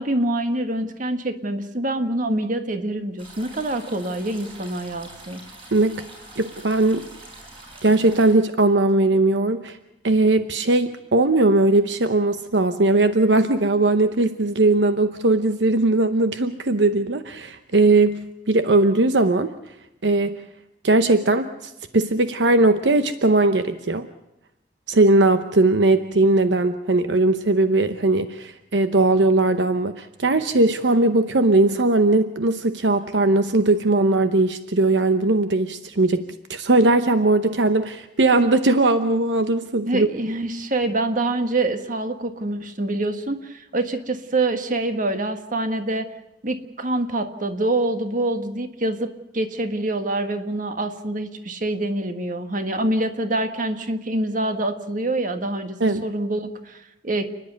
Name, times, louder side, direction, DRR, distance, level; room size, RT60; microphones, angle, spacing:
voice 1, 0.0-5.4 39.9-46.1 46.4-57.3, right 2 dB, 45° right, 7 dB, 1.6 m, -25 dB
sound 1, 3.2-8.3, right 2 dB, 30° right, 6.1 m, -44 dB
voice 2, 5.7-6.0 6.4-7.0 7.8-9.8 10.0-18.2 18.5-19.5 20.0-20.4 20.8-24.1 24.9-40.1 55.8-56.0, right 2 dB, 80° right, 9 dB, 0.9 m, -19 dB
30.0 x 10.5 x 9.4 m, 0.90 s
head